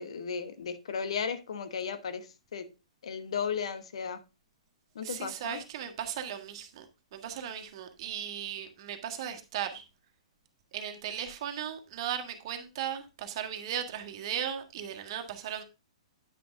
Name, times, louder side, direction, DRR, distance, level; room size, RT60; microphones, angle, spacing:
voice 1, 0.0-2.7 3.0-4.2 4.9-5.6, left 6 dB, 65° left, 1.1 m, -35 dB
voice 2, 5.0-6.8 7.1-9.8 10.7-15.6, right 9 dB, 50° right, 1.5 m, -37 dB
9.6 x 6.0 x 3.6 m
figure-of-eight pair, 120°, 3 cm